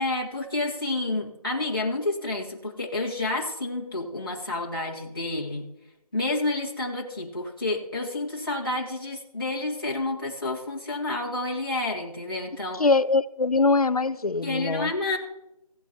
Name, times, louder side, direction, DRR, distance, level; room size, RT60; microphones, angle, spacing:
voice 1, 0.0-5.7 6.1-12.8 14.4-15.2, left 2 dB, 35° left, 2.0 m, -29 dB
voice 2, 12.7-14.9, left 3 dB, 70° left, 0.6 m, -23 dB
17.0 x 8.7 x 2.9 m
figure-of-eight pair, 175°, 20 cm